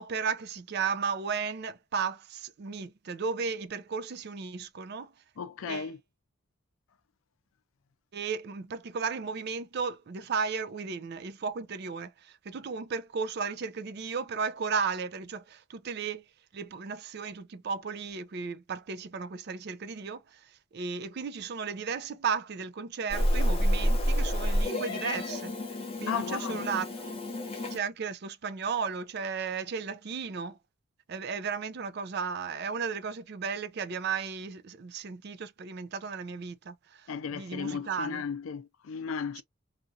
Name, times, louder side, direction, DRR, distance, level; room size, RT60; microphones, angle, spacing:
voice 1, 0.0-5.1 5.6-5.9 8.1-16.2 16.5-25.5 26.0-27.2 27.7-30.6 31.1-38.2 39.4-39.5, right 5 dB, 50° right, 0.4 m, -34 dB
voice 2, 5.4-6.0 26.1-26.6 37.1-39.4, left 6 dB, 80° left, 0.4 m, -35 dB
Meow, 23.1-27.8, equal, 30° left, 0.9 m, -29 dB
2.8 x 2.5 x 2.6 m
head